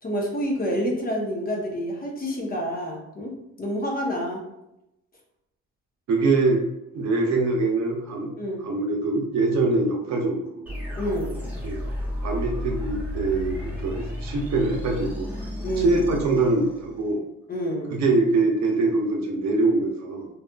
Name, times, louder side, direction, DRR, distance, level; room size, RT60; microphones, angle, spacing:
voice 1, 0.0-4.4 8.4-8.6 11.0-11.3 15.6-16.0 17.5-18.0, equal, 30° left, -1 dB, 0.7 m, -28 dB
voice 2, 6.1-6.6 6.9-8.3 8.6-10.7 11.6-11.8 12.2-15.3 15.8-17.2 17.9-20.3, right 3 dB, 65° right, 1 dB, 0.6 m, -23 dB
sound 1, 10.7-17.1, left 1 dB, 5° right, 1.0 m, -33 dB
2.7 x 2.4 x 2.2 m, 0.88 s
cardioid pair, 90°, 30 cm